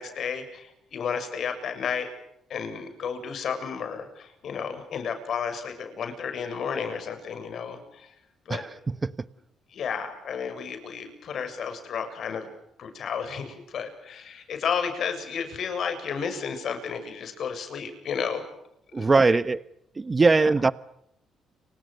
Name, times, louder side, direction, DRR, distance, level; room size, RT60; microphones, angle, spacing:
voice 1, 0.0-2.1 2.5-8.1 8.5-8.7 9.7-12.5 12.8-18.4 18.9-19.4 20.3-20.5, left 6 dB, 65° left, 8 dB, 7.2 m, -32 dB
voice 2, 8.5-9.1 18.9-19.6 20.0-20.7, right 3 dB, 25° right, 16 dB, 1.1 m, -21 dB
30.0 x 26.0 x 6.6 m, 0.79 s
cardioid pair, 90°, 0 cm